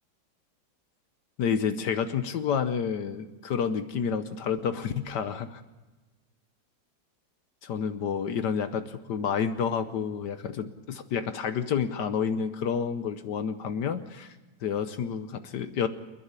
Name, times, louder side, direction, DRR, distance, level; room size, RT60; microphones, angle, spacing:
voice 1, 1.4-5.6 7.6-14.3 14.6-15.9, left 7 dB, 75° left, 10 dB, 1.5 m, -29 dB
28.5 x 10.0 x 9.7 m, 1.2 s
omnidirectional pair, 1.9 m